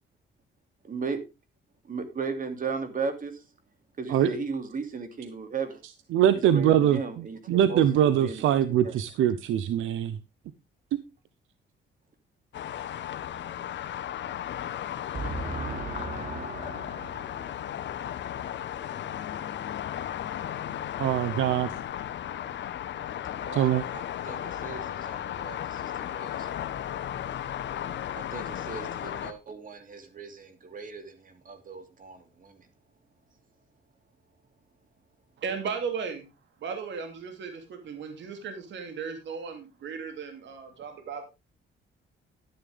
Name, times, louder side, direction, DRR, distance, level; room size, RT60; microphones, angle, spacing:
voice 1, 0.8-1.2 1.9-3.3 4.0-5.8 6.3-7.4 7.7-7.8 8.2-8.4 15.1-17.6 23.4-26.7 28.1-32.6, right 4 dB, 45° right, 2.8 m, -36 dB
voice 2, 6.1-10.2 21.0-21.7 23.5-23.8, right 10 dB, 85° right, 0.8 m, -23 dB
sound 1, 12.5-29.3, left 10 dB, 65° left, 1.1 m, -35 dB
voice 3, 35.4-36.2 36.6-41.3, right 6 dB, 65° right, 3.0 m, -36 dB
11.0 x 10.5 x 3.6 m
cardioid pair, 90°, 20 cm